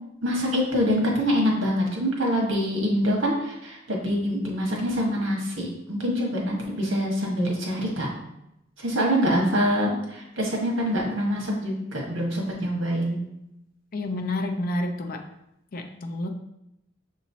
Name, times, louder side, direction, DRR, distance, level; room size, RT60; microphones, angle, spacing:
voice 1, 0.2-8.1 8.8-13.2, equal, 75° right, -1 dB, 1.3 m, -25 dB
voice 2, 13.9-15.2 15.7-16.3, left 1 dB, 45° left, 4 dB, 0.5 m, -29 dB
6.4 x 3.0 x 2.7 m, 0.85 s
head